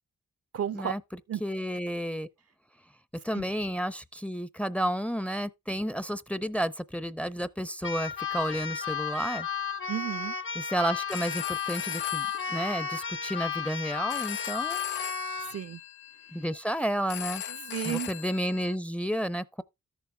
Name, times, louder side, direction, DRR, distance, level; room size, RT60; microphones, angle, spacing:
voice 1, 0.5-0.9 1.3-1.4 3.3-3.4 9.9-10.3 15.4-15.8 17.5-18.1, right 9 dB, 50° right, 0.5 m, -33 dB
voice 2, 1.4-2.3 3.2-9.5 10.6-15.0 16.3-17.4 17.8-19.6, equal, 5° left, 0.6 m, -31 dB
Keyboard (musical), 7.8-15.6, left 7 dB, 40° left, 0.9 m, -33 dB
Telephone, 10.9-18.8, left 12 dB, 90° left, 0.5 m, -41 dB
13.5 x 7.0 x 2.2 m
cardioid pair, 55°, 31 cm